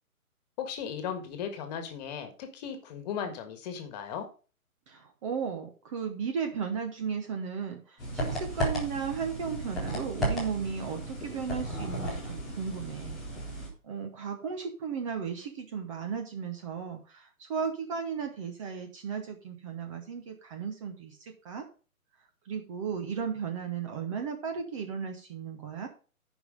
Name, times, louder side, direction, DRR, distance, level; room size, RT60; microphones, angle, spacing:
voice 1, 0.6-4.3, left 7 dB, 30° left, 7 dB, 1.7 m, -36 dB
voice 2, 4.9-13.2 13.8-21.6 22.4-25.9, right 6 dB, 20° right, 5 dB, 1.0 m, -35 dB
sound 1, 8.0-13.7, right 1 dB, ahead, 0.5 m, -34 dB
10.5 x 5.5 x 5.2 m, 0.36 s
figure-of-eight pair, 140°, 44 cm